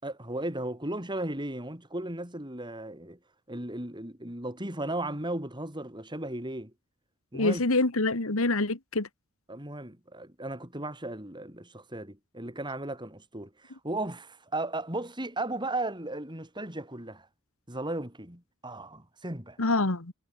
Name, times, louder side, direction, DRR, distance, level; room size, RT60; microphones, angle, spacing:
voice 1, 0.0-3.2 3.5-6.7 7.3-7.6 9.5-17.3 17.7-19.6, right 1 dB, 20° right, 6.0 m, -36 dB
voice 2, 7.3-9.1 19.6-20.1, left 2 dB, 70° left, 1.9 m, -26 dB
head